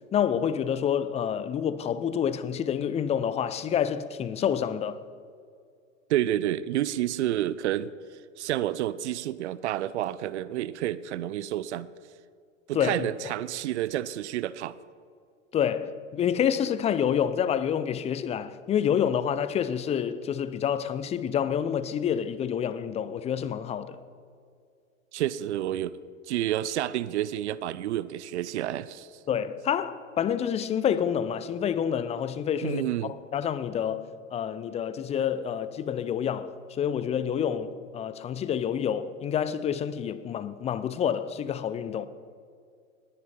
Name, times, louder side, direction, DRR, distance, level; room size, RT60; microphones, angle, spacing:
voice 1, 0.1-5.0 12.7-13.1 15.5-24.0 29.3-34.0 34.3-42.1, left 8 dB, 15° left, 0.5 m, -28 dB
voice 2, 6.1-7.9 8.4-11.9 12.7-14.7 25.1-26.0 26.3-29.1 32.6-33.1, right 13 dB, 60° right, 0.6 m, -29 dB
19.5 x 10.0 x 4.4 m
figure-of-eight pair, 85°, 39 cm